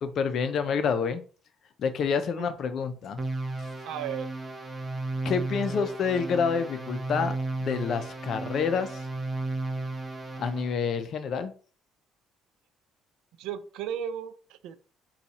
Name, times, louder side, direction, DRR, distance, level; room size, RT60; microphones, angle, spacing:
voice 1, 0.0-1.2 1.8-3.2 3.6-3.7 5.2-9.1 10.4-11.5, left 6 dB, 55° left, 10 dB, 0.6 m, -28 dB
sound 1, 3.2-10.7, right 2 dB, 25° right, 0.8 m, -34 dB
voice 2, 3.8-4.3 13.4-14.8, right 9 dB, 80° right, 12 dB, 0.4 m, -35 dB
4.0 x 2.4 x 4.2 m, 0.39 s
cardioid pair, 95°, 0 cm